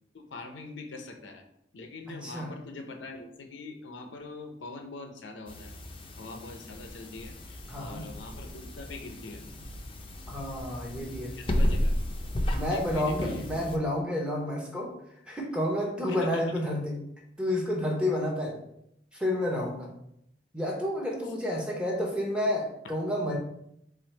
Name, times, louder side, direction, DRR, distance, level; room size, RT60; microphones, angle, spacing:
voice 1, 0.1-1.4 1.7-5.7 6.2-9.4 11.4-12.0 12.7-13.4 16.1-16.6, left 3 dB, 85° left, 5 dB, 0.6 m, -43 dB
voice 2, 2.1-2.5 7.7-8.1 10.3-11.3 12.5-14.9 15.3-17.0 17.4-18.6 19.1-19.9 20.5-23.4, left 1 dB, 5° right, -2 dB, 0.8 m, -30 dB
sound 1, 5.5-13.8, equal, 30° left, 0.5 m, -33 dB
4.5 x 2.5 x 4.5 m, 0.76 s
head